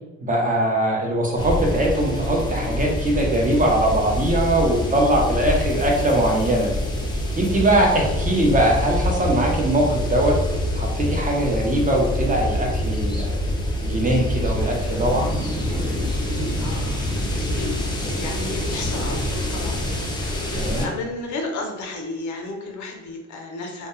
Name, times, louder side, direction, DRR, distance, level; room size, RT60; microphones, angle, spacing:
voice 1, 0.2-6.7 7.4-10.4 10.7-13.3 13.8-15.3 20.6-20.8, right 1 dB, 25° right, -1 dB, 0.6 m, -21 dB
sound 1, 1.4-20.9, left 1 dB, 15° left, 0.5 m, -26 dB
sound 2, 14.3-19.5, right 2 dB, 75° right, 0.6 m, -41 dB
voice 2, 16.6-23.9, left 2 dB, 70° left, 2 dB, 0.6 m, -33 dB
2.2 x 2.1 x 3.0 m, 1.1 s
cardioid pair, 90°, 30 cm